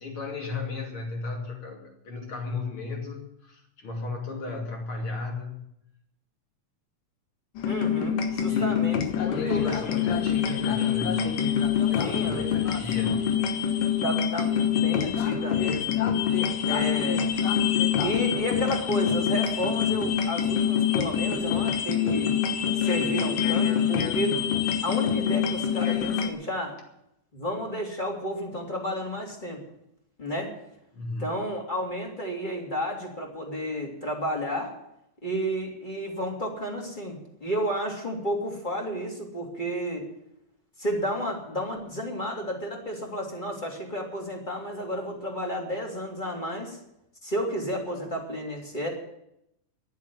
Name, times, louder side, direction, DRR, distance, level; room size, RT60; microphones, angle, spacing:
voice 1, 0.0-5.7 8.5-8.9 9.2-11.3 11.9-13.2 30.9-31.4, left 3 dB, 40° left, 1 dB, 3.4 m, -35 dB
sound 1, 7.6-26.3, left 8 dB, 80° left, 2.8 m, -25 dB
voice 2, 7.6-9.7 12.0-12.8 13.6-15.9 16.7-17.2 18.0-22.3 22.7-24.3 24.8-26.8 27.3-29.6 30.2-30.5 31.2-34.7 35.2-40.0 40.8-46.8 47.2-48.9, equal, 15° left, 0 dB, 2.9 m, -32 dB
11.0 x 10.5 x 9.5 m, 0.79 s
omnidirectional pair, 3.7 m